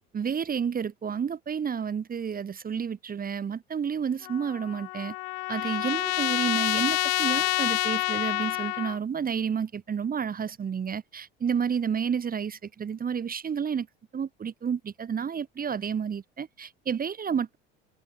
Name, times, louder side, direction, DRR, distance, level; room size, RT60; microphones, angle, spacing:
voice 1, 0.1-5.1 5.5-13.9 14.1-17.6, right 7 dB, 25° right, 1.4 m, -30 dB
Trumpet, 4.2-9.0, left 40 dB or more, 65° left, 0.9 m, -28 dB
hypercardioid pair, 75°, 32 cm